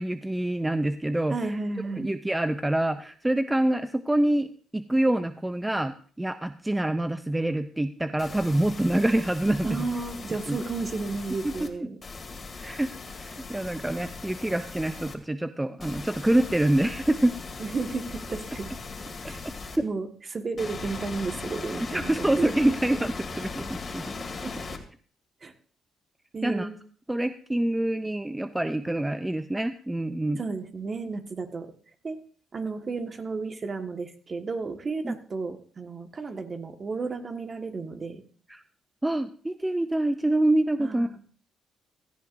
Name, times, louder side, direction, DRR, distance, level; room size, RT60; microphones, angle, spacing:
voice 1, 0.0-1.5 2.0-9.8 10.5-10.6 11.4-11.7 12.6-17.4 21.9-24.1 26.4-26.7 27.1-30.4 35.0-35.2 38.5-38.6 39.0-41.1, right 1 dB, 10° right, 10 dB, 0.5 m, -26 dB
voice 2, 1.3-2.1 9.6-12.0 17.6-18.7 19.2-19.4 19.8-22.8 24.4-24.5 25.4-25.5 26.3-26.8 30.4-31.7 32.0-32.2 32.5-38.2 40.8-41.2, right 4 dB, 35° right, 6 dB, 1.6 m, -33 dB
sound 1, 8.2-11.7 12.0-15.1 15.8-19.8 20.6-24.8, left 4 dB, 40° left, 2.3 m, -39 dB
16.5 x 14.0 x 2.6 m, 0.44 s
cardioid pair, 90°, 0 cm